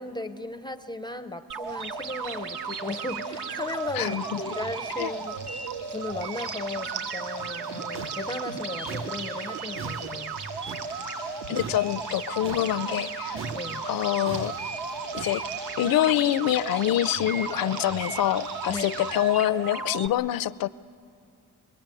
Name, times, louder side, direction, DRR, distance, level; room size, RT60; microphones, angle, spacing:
voice 1, 0.0-5.3 5.9-10.3 13.5-13.8 18.7-18.9, left 2 dB, 10° left, 8 dB, 0.5 m, -35 dB
sound 1, 1.5-20.1, right 4 dB, 70° right, 1.4 m, -35 dB
sound 2, 1.7-19.2, right 3 dB, 55° right, 7.6 m, -44 dB
voice 2, 3.9-4.5 5.0-5.1 11.5-13.4 13.9-14.5 15.1-15.4 15.8-20.7, left 13 dB, 60° left, 17 dB, 0.5 m, -26 dB
sound 3, 7.4-13.1 13.4-15.6, right 4 dB, 35° right, 0.6 m, -41 dB
23.5 x 21.5 x 9.0 m, 2.4 s
cardioid pair, 140°, 40 cm